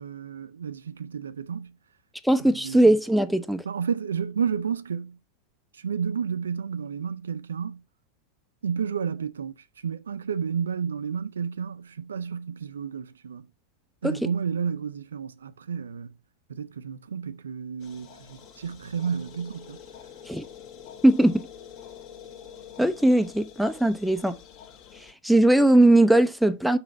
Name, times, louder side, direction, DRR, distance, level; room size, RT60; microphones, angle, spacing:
voice 1, 0.0-1.8 2.4-2.9 3.7-5.2 5.7-7.8 8.6-13.5 14.0-16.1 16.5-19.8, right 7 dB, 70° right, 0.4 m, -31 dB
voice 2, 2.2-3.6 14.0-14.1 20.3-20.4 21.0-21.4 22.8-24.4 25.2-26.8, right 1 dB, ahead, 0.6 m, -19 dB
sound 1, 17.8-25.1, left 8 dB, 40° left, 1.5 m, -46 dB
5.6 x 4.0 x 5.3 m
figure-of-eight pair, 90°, 0 cm